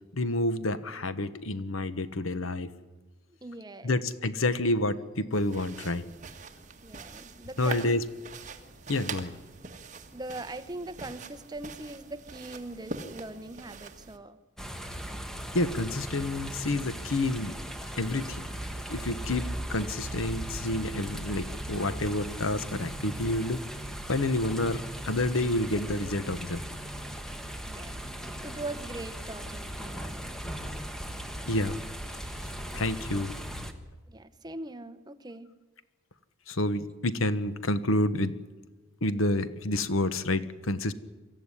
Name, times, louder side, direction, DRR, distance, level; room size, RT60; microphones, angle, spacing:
voice 1, 0.1-2.7 3.8-6.0 7.6-8.0 8.9-9.3 15.5-17.6 18.0-18.5 18.9-23.6 24.1-26.6 31.5-31.8 32.4-32.5 32.7-33.3 36.5-38.4 39.0-40.9, left 1 dB, 75° left, 13 dB, 1.2 m, -29 dB
voice 2, 3.4-4.0 6.8-8.0 10.1-14.4 19.4-19.5 27.6-28.0 28.4-30.2 34.1-35.5, right 2 dB, 20° right, 12 dB, 0.9 m, -41 dB
sound 1, 5.3-14.2, right 4 dB, 35° right, 1.7 m, -43 dB
sound 2, 14.6-33.7, equal, ahead, 1.3 m, -38 dB
24.0 x 14.0 x 9.9 m, 1.2 s
head